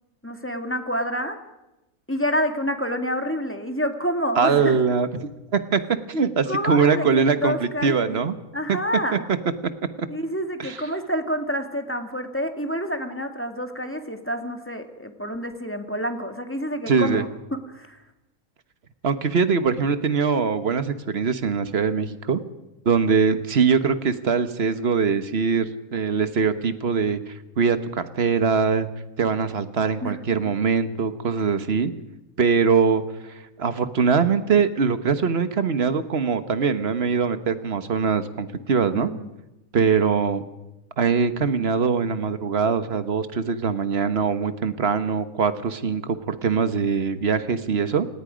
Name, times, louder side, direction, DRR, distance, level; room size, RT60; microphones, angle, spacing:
voice 1, 0.2-1.4 2.1-4.8 6.5-8.2 8.5-9.3 10.1-18.0 30.0-30.2 38.9-39.3, equal, 10° left, 5 dB, 1.8 m, -28 dB
voice 2, 4.4-5.8 6.1-8.3 8.7-8.8 9.1-9.2 10.0-10.1 10.6-10.8 16.9-17.2 19.0-22.4 22.8-28.9 29.2-31.9 32.4-33.0 33.6-39.1 39.7-40.4 41.0-48.1, right 5 dB, 45° right, 10 dB, 1.3 m, -22 dB
28.0 x 18.0 x 5.1 m, 0.97 s
omnidirectional pair, 1.6 m